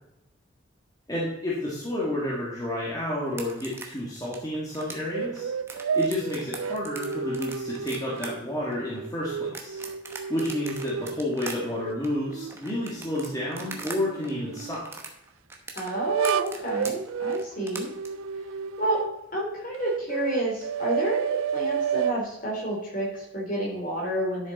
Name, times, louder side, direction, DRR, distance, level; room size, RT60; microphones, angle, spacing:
voice 1, 1.1-5.5 5.9-9.8 10.3-14.8, left 1 dB, 15° left, -6 dB, 1.8 m, -30 dB
sound 1, 3.3-14.0 14.2-18.1, right 3 dB, 10° right, 1.0 m, -40 dB
sound 2, 5.1-8.4 8.9-11.2 11.7-14.8 15.9-19.2 19.8-22.2, right 7 dB, 80° right, 0.3 m, -31 dB
voice 2, 15.7-17.9 18.8-19.0 19.3-24.5, right 1 dB, 40° left, -2 dB, 3.2 m, -30 dB
11.0 x 6.4 x 4.1 m, 0.90 s
head